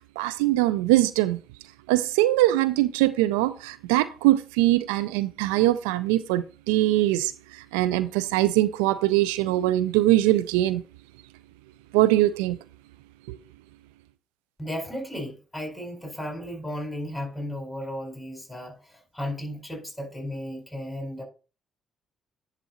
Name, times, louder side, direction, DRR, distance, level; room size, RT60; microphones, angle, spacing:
voice 1, 0.2-1.4 1.9-10.8 11.9-12.6 13.3-13.4, right 15 dB, 75° right, 0.3 m, -22 dB
voice 2, 14.6-21.2, equal, 5° left, 4.6 m, -34 dB
10.5 x 3.7 x 4.3 m
figure-of-eight pair, 45°, 0 cm